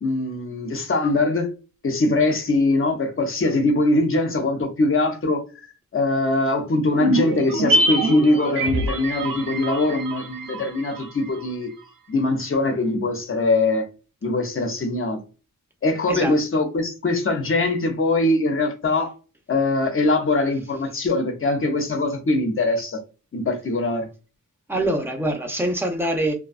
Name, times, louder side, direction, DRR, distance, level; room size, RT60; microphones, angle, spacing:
voice 1, 0.0-1.5 1.8-5.4 5.9-11.7 12.1-13.9 14.2-15.2 15.8-19.1 19.5-23.0 23.3-24.1, left 2 dB, 40° left, 0.6 m, -22 dB
sound 1, 6.9-11.4 11.7-11.8, right 1 dB, 90° right, 0.6 m, -24 dB
voice 2, 24.7-26.3, right 1 dB, 5° right, 0.5 m, -24 dB
2.5 x 2.2 x 2.3 m
wide cardioid pair, 125°, 33 cm